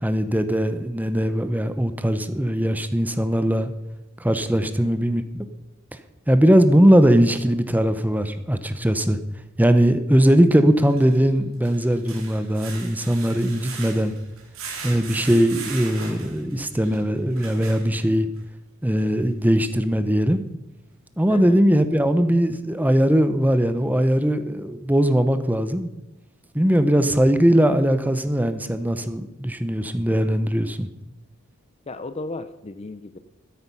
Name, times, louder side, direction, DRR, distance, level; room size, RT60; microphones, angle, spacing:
voice 1, 0.0-3.7 4.2-5.2 6.3-9.2 9.6-14.1 14.8-18.3 18.8-20.4 21.2-25.9 26.5-30.9, equal, 10° right, 10 dB, 0.8 m, -20 dB
voice 2, 4.6-4.9 21.3-21.6 31.9-33.2, left 2 dB, 30° left, 12 dB, 0.6 m, -35 dB
sound 1, 8.2-8.3 10.8-18.4 19.0-19.1 19.5-19.6, right 5 dB, 90° right, 3.2 m, -39 dB
13.0 x 10.0 x 5.5 m, 0.95 s
head